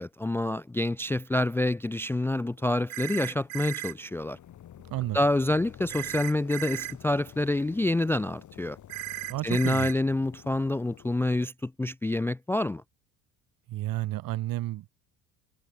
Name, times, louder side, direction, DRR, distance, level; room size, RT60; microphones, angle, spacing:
voice 1, 0.0-4.4 5.1-8.8 9.4-12.8, left 2 dB, 5° left, 0.5 m, -27 dB
sound 1, 2.2-11.4, left 11 dB, 50° left, 4.5 m, -51 dB
sound 2, 2.9-3.9 5.9-6.9 8.9-9.9, right 23 dB, 80° right, 1.5 m, -36 dB
voice 2, 4.9-5.2 9.3-9.9 13.7-14.9, right 15 dB, 60° right, 3.3 m, -31 dB
hypercardioid pair, 75°, 39 cm